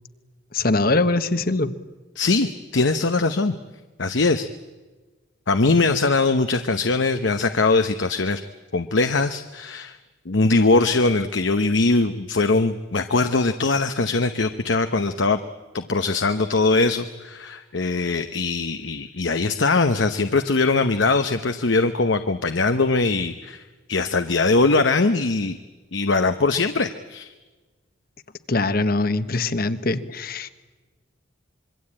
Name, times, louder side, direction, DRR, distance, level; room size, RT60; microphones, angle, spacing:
voice 1, 0.5-1.7 28.5-30.5, left 2 dB, 50° left, 12 dB, 1.2 m, -22 dB
voice 2, 2.2-3.5 4.0-4.5 5.5-8.4 8.7-10.0 10.3-15.4 15.7-23.6 23.9-25.6 25.9-27.3, left 3 dB, 70° left, 8 dB, 0.9 m, -21 dB
26.0 x 23.0 x 8.8 m, 1.2 s
head